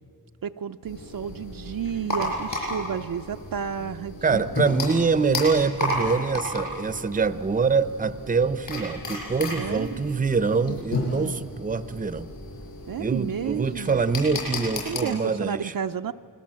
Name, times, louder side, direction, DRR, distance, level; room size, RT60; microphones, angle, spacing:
voice 1, 0.4-4.4 9.6-10.0 11.1-11.4 12.9-14.0 14.8-16.1, right 8 dB, 60° right, 8 dB, 0.6 m, -31 dB
sound 1, 0.8-15.0, left 1 dB, 55° left, 7.1 m, -33 dB
voice 2, 4.2-12.3 13.0-15.7, right 4 dB, 20° right, 13 dB, 0.7 m, -25 dB
28.5 x 21.0 x 7.5 m, 2.5 s
wide cardioid pair, 140°, 39 cm